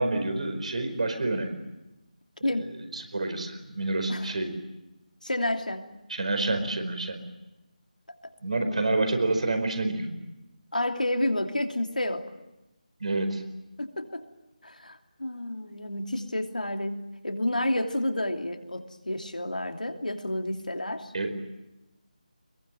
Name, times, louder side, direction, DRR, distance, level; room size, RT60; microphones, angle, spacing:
voice 1, 0.0-1.5 2.9-4.6 6.1-7.2 8.4-10.1 13.0-13.4 21.1-21.4, right 2 dB, 55° right, 7 dB, 4.8 m, -28 dB
voice 2, 5.2-5.9 8.6-8.8 10.7-12.3 13.8-14.3 14.6-21.1, left 1 dB, 80° left, 5 dB, 3.0 m, -30 dB
24.5 x 22.0 x 9.1 m, 0.96 s
figure-of-eight pair, 160°, 4 cm